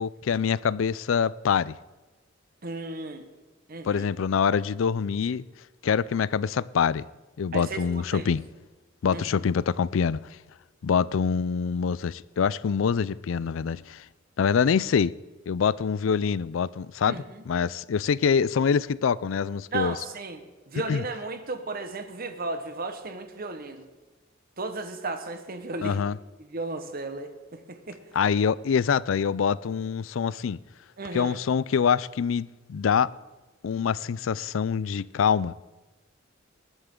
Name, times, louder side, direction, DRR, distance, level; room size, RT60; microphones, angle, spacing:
voice 1, 0.0-1.7 3.8-5.4 5.8-7.1 7.4-8.4 9.0-10.2 10.8-14.0 14.4-15.1 15.5-20.0 20.7-21.0 25.8-26.2 28.1-30.6 31.1-33.1 33.6-35.5, left 6 dB, 75° left, 0.4 m, -25 dB
voice 2, 2.6-3.3 3.7-4.1 7.5-7.8 8.1-8.3 9.1-9.2 17.0-17.2 19.7-23.8 24.6-26.0 26.5-28.0 31.0-31.4, right 3 dB, 50° right, 1.2 m, -34 dB
20.0 x 11.5 x 3.8 m
head